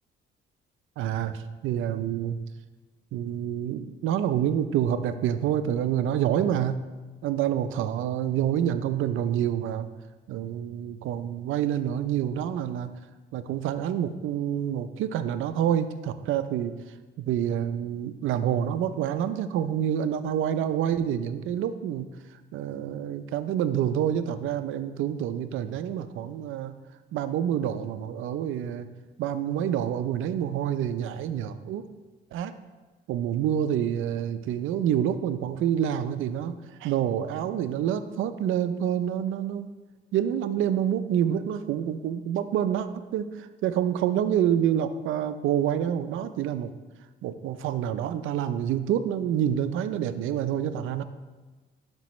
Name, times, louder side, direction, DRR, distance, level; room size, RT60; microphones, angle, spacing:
voice 1, 1.0-2.4 3.1-6.8 7.2-9.9 10.3-12.9 13.3-16.7 17.2-22.1 22.5-26.7 27.1-28.9 29.2-31.8 32.3-32.5 33.1-36.5 36.8-39.7 40.1-46.7 47.2-51.0, right 10 dB, 85° right, 11 dB, 0.5 m, -27 dB
11.5 x 5.2 x 3.1 m, 1.3 s
cardioid pair, 90°, 20 cm